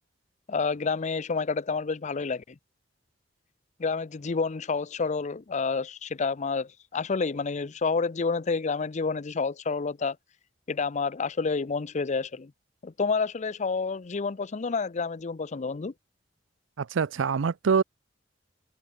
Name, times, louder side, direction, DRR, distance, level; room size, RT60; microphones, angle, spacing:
voice 1, 0.5-2.4 3.8-10.2 10.7-12.5 12.8-15.9, left 4 dB, 40° left, 0.5 m, -29 dB
voice 2, 16.8-17.8, right 5 dB, 75° right, 0.5 m, -25 dB
head